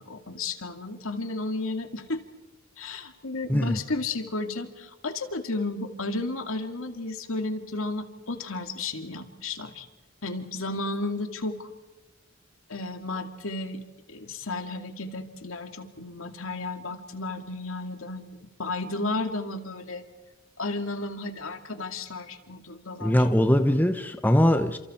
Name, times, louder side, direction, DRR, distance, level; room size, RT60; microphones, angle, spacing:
voice 1, 0.0-2.2 2.8-9.9 10.2-11.7 12.7-13.8 14.1-18.3 18.6-20.0 20.6-23.2, left 2 dB, 70° left, 6 dB, 2.4 m, -33 dB
voice 2, 23.0-24.8, equal, 10° left, 8 dB, 0.9 m, -21 dB
30.0 x 27.5 x 4.4 m, 1.1 s
head